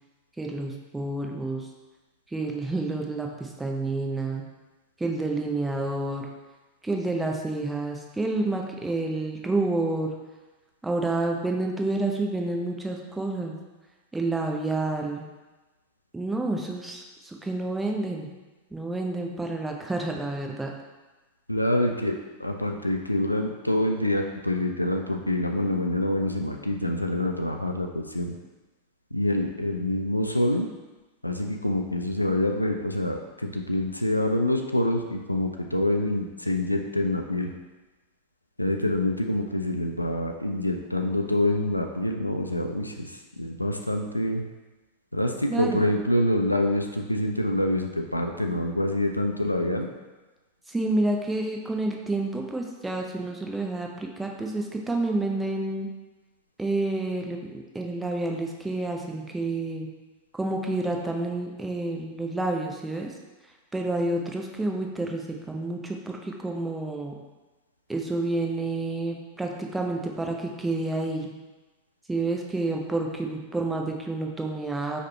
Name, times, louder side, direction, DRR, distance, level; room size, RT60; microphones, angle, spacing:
voice 1, 0.4-1.7 2.3-4.5 5.0-6.3 6.8-10.1 10.8-13.6 14.1-15.3 16.1-18.3 18.7-20.7 45.5-45.8 50.7-55.9 56.6-59.9 60.3-63.1 63.7-67.2 67.9-71.3 72.1-75.0, right 2 dB, 10° right, 1 dB, 0.5 m, -29 dB
voice 2, 21.5-28.3 29.1-30.7 31.2-37.5 38.6-44.4 45.1-49.9, left 1 dB, 85° left, 3 dB, 0.3 m, -26 dB
4.9 x 2.2 x 3.1 m, 1.2 s
figure-of-eight pair, 90°, 0 cm